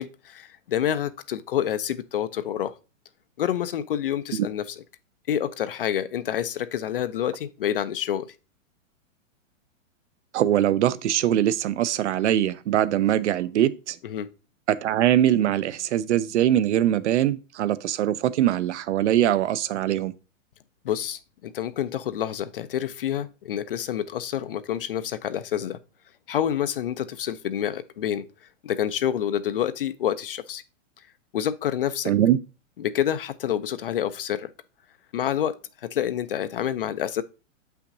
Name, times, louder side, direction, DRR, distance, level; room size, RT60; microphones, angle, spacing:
voice 1, 0.0-2.7 3.4-4.8 5.3-8.3 14.0-14.3 20.8-25.8 26.3-28.3 28.6-30.6 31.3-32.1 32.8-34.5 35.1-35.6 35.8-37.2, left 10 dB, 45° left, 0.4 m, -28 dB
voice 2, 10.3-14.0 14.7-20.1 32.1-32.4, right 12 dB, 60° right, 0.6 m, -22 dB
7.6 x 5.8 x 2.6 m
hypercardioid pair, 170°, 40 cm